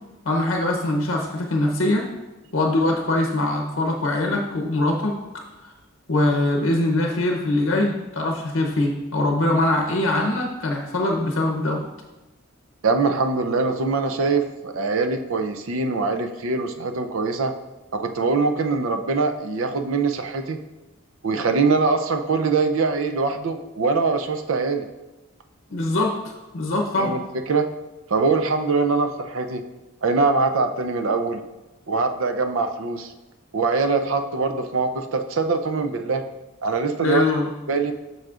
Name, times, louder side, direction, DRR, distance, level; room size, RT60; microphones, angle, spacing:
voice 1, 0.2-2.1 2.5-5.2 5.6-5.7 6.1-11.9 25.7-27.2 37.0-37.5, left 2 dB, 65° left, 1 dB, 0.7 m, -22 dB
voice 2, 12.8-17.5 17.9-20.6 21.2-24.9 26.9-27.2 27.5-27.7 28.1-29.6 30.0-31.4 31.9-33.1 33.5-36.2 36.6-37.2 37.7-37.9, right 4 dB, 75° right, 7 dB, 0.5 m, -23 dB
7.6 x 6.3 x 2.4 m, 1.1 s
head